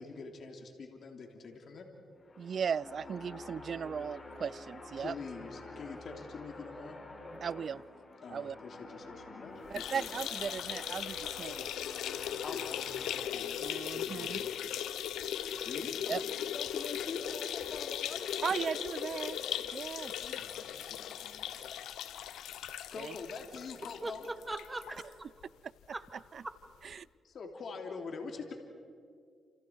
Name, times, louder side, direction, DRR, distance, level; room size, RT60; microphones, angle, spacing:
voice 1, 0.0-1.9 5.0-7.0 8.2-10.1 12.4-14.6 15.5-18.8 20.2-21.5 22.9-24.3 27.2-28.5, left 4 dB, 65° left, 3 dB, 3.1 m, -45 dB
sound 1, 2.1-13.2, left 2 dB, 40° left, 5.9 m, -48 dB
voice 2, 2.4-5.1 7.4-7.8 8.3-8.6 9.7-11.7 13.6-14.5 16.1-16.2 18.4-19.4 19.7-20.1 23.0-23.1 26.3-26.4 26.8-27.1, right 7 dB, 60° right, 22 dB, 0.5 m, -37 dB
sound 2, 9.7-25.1 25.4-25.5 25.8-25.9 26.9-27.0, left 10 dB, 85° left, 0.9 m, -38 dB
voice 3, 24.0-25.0 25.9-26.0 26.4-26.5, right 2 dB, 20° right, 7 dB, 2.3 m, -39 dB
30.0 x 28.5 x 4.7 m, 2.3 s
cardioid pair, 65°, 0 cm